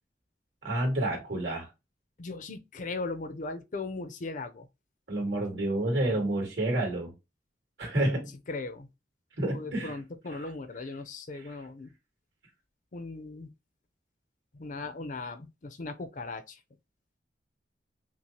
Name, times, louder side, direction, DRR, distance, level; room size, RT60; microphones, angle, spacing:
voice 1, 0.6-1.7 5.1-7.1 7.8-8.3 9.4-10.0 10.3-10.4 11.3-11.4, right 1 dB, 70° right, 2.3 m, -29 dB
voice 2, 2.2-4.7 8.5-8.9 9.5-11.9 12.9-13.5 14.6-16.6, left 3 dB, 45° left, 0.5 m, -38 dB
5.8 x 2.0 x 2.8 m
head